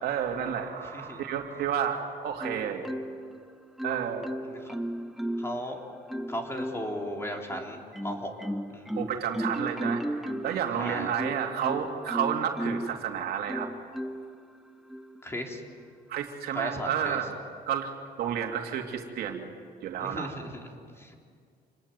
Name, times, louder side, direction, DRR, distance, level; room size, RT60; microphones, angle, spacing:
voice 1, 0.0-2.9 3.8-4.3 9.0-13.7 16.1-17.3 17.7-17.9 18.2-19.5 19.8-20.3, right 8 dB, 70° right, 3 dB, 2.9 m, -31 dB
Marimba xylophone, 2.4-3.4 3.8-5.6 6.1-7.0 7.5-13.0 13.5-14.4 14.9-15.2, right 1 dB, ahead, 1.1 m, -35 dB
voice 2, 5.4-5.8 6.3-8.3 8.7-9.0 10.8-11.1 15.2-15.6 16.5-17.2 20.0-20.7 21.0-21.3, equal, 15° left, 2 dB, 3.9 m, -36 dB
27.5 x 20.5 x 9.4 m, 2.2 s
cardioid pair, 110°, 17 cm